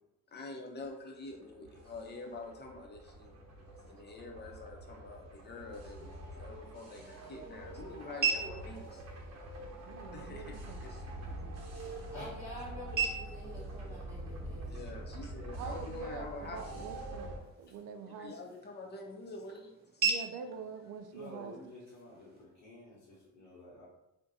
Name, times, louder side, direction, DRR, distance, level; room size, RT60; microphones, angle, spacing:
voice 1, 0.3-3.4 3.9-6.1 6.4-9.0 10.1-11.1 14.6-16.9 18.1-20.1, left 3 dB, 35° left, 1 dB, 0.7 m, -46 dB
sound 1, 1.3-17.4, right 1 dB, 60° right, 0.9 m, -45 dB
sound 2, 6.4-22.4, right 6 dB, 35° right, 0.7 m, -41 dB
voice 2, 9.8-11.7 15.6-18.3 20.0-21.5, right 6 dB, 80° right, 7 dB, 0.5 m, -46 dB
voice 3, 12.1-14.8, left 1 dB, 10° right, -7 dB, 1.0 m, -48 dB
voice 4, 17.4-17.7 21.1-23.9, left 1 dB, 85° left, -6 dB, 0.9 m, -51 dB
2.5 x 2.2 x 4.0 m, 0.91 s
cardioid pair, 90°, 30 cm